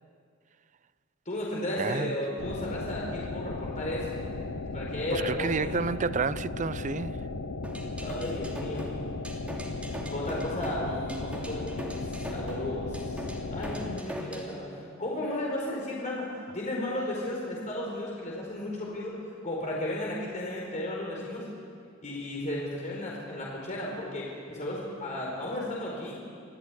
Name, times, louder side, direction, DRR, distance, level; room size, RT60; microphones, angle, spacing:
voice 1, 1.2-4.1 4.7-5.7 8.0-9.0 10.1-16.3 16.5-19.2 19.4-21.5 22.0-26.2, left 1 dB, 35° left, 4.7 m, -34 dB
voice 2, 1.8-2.1 5.1-7.2, right 5 dB, 35° right, 0.5 m, -30 dB
sound 1, 2.4-14.0, left 3 dB, 85° left, 0.9 m, -36 dB
sound 2, 7.6-14.5, equal, 5° right, 2.8 m, -40 dB
25.5 x 15.0 x 9.7 m
head